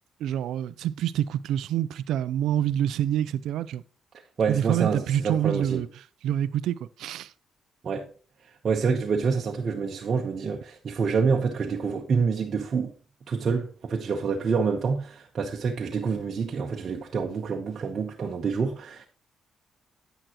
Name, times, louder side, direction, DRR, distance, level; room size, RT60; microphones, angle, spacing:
voice 1, 0.2-3.8 4.5-5.9 6.2-7.3, right 11 dB, 80° right, 0.4 m, -27 dB
voice 2, 4.4-5.8 7.8-8.1 8.6-12.9 13.3-19.1, right 5 dB, 50° right, 1.0 m, -27 dB
9.0 x 8.9 x 3.0 m
cardioid pair, 90°, 0 cm